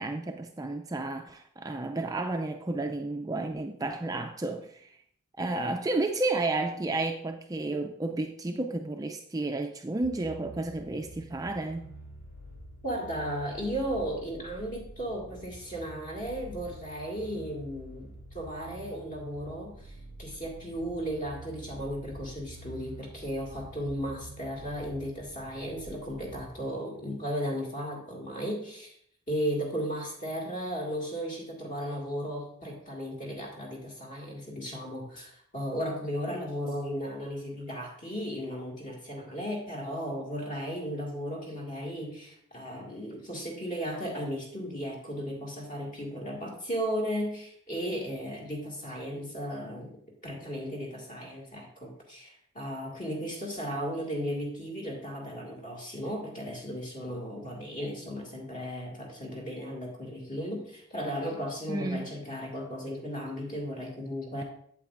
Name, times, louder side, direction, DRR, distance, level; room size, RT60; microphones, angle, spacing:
voice 1, 0.0-4.9 5.4-11.9 61.7-62.1, right 2 dB, 15° right, 5 dB, 0.3 m, -32 dB
sound 1, 10.0-26.5, right 1 dB, 80° left, 2.9 m, -47 dB
voice 2, 12.8-19.9 20.2-28.9 29.3-64.4, equal, 40° left, -2 dB, 2.1 m, -35 dB
8.3 x 7.8 x 2.5 m, 0.66 s
head